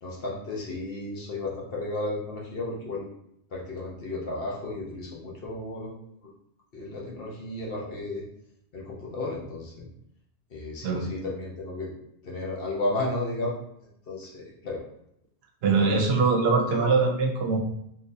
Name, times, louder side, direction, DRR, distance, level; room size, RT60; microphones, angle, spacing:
voice 1, 0.0-3.0 3.5-5.9 6.7-8.2 8.7-9.9 10.5-11.9 12.2-13.6 14.1-14.8, left 2 dB, 55° left, -3 dB, 0.9 m, -33 dB
voice 2, 15.6-17.6, right 4 dB, 70° right, 1 dB, 0.8 m, -22 dB
3.7 x 2.6 x 2.6 m, 0.76 s
omnidirectional pair, 1.2 m